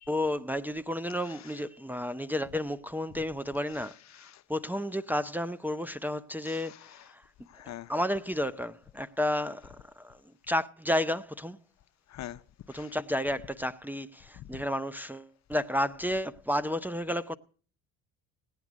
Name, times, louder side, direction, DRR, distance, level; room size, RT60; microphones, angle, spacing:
voice 1, 0.1-3.9 4.5-6.7 7.1-7.2 7.6-10.2 10.5-11.6 12.7-17.4, left 1 dB, 5° right, 0.6 m, -31 dB
voice 2, 1.2-1.6 3.1-3.2 3.8-4.4 6.5-7.1 7.5-7.9 12.1-12.4 12.7-12.9 14.4-14.5, left 12 dB, 55° left, 0.7 m, -46 dB
17.0 x 9.5 x 6.1 m
cardioid pair, 90°, 34 cm